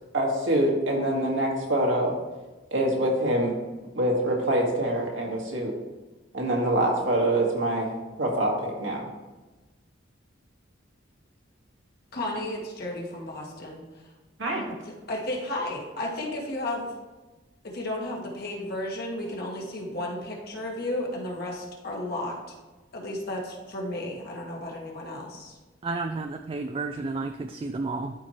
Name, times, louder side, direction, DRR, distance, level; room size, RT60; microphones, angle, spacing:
voice 1, 0.1-2.2 2.7-3.6 4.0-5.8 6.3-7.9 8.2-9.1 14.4-14.7, right 1 dB, 85° right, -1 dB, 1.8 m, -25 dB
voice 2, 12.1-13.8 14.8-16.9 17.7-22.3 22.9-25.6, left 1 dB, 55° left, -1 dB, 1.7 m, -33 dB
voice 3, 25.8-28.1, right 3 dB, 30° right, 6 dB, 0.3 m, -31 dB
12.5 x 4.5 x 3.1 m, 1.2 s
head